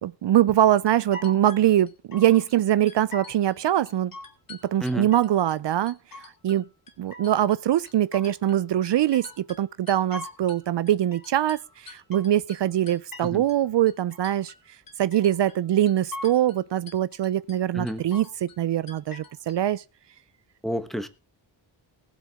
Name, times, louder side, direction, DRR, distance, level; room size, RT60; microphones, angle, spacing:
voice 1, 0.0-4.1 4.5-6.7 7.0-9.3 9.6-14.5 15.0-19.8, right 12 dB, 65° right, 0.5 m, -23 dB
sound 1, 0.9-2.5 2.9-3.6 3.9-5.6 5.9-6.6 6.9-8.6 8.9-10.6 10.9-13.6 13.9-14.6 14.9-15.6 15.9-16.6 16.9-17.6 17.9-18.6 18.9-19.6, left 2 dB, 45° left, 2.5 m, -43 dB
voice 2, 20.6-21.1, right 1 dB, ahead, 1.1 m, -30 dB
21.0 x 7.3 x 3.6 m
wide cardioid pair, 160°, 46 cm